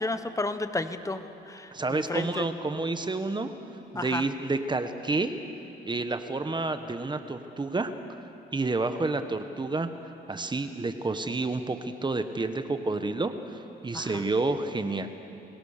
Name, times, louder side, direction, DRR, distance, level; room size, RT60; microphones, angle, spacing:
voice 1, 0.0-2.5 3.9-4.3 13.9-14.2, left 2 dB, 15° left, 10 dB, 1.2 m, -32 dB
voice 2, 1.7-3.5 3.9-5.3 5.8-7.9 8.5-9.9 10.3-13.6 13.8-15.1, right 3 dB, 20° right, 9 dB, 1.2 m, -29 dB
29.0 x 17.0 x 6.7 m, 3.0 s
cardioid pair, 90°, 20 cm